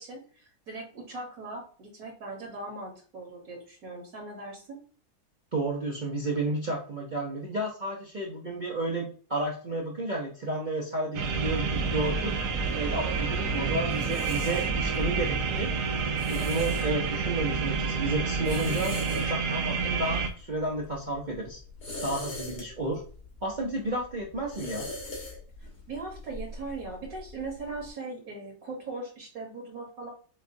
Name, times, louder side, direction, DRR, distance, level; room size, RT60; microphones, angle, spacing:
voice 1, 0.0-4.8 13.3-13.8 25.9-30.1, right 3 dB, 65° right, 0 dB, 1.6 m, -40 dB
voice 2, 5.5-12.3 12.7-15.7 16.3-21.6 22.0-23.0 23.4-24.9, right 2 dB, 40° right, -3 dB, 0.7 m, -32 dB
sound 1, 11.1-20.3, right 5 dB, 85° right, 1.2 m, -29 dB
sound 2, 12.5-27.9, left 2 dB, 85° left, 2.2 m, -43 dB
6.4 x 2.4 x 2.6 m, 0.42 s
omnidirectional pair, 1.7 m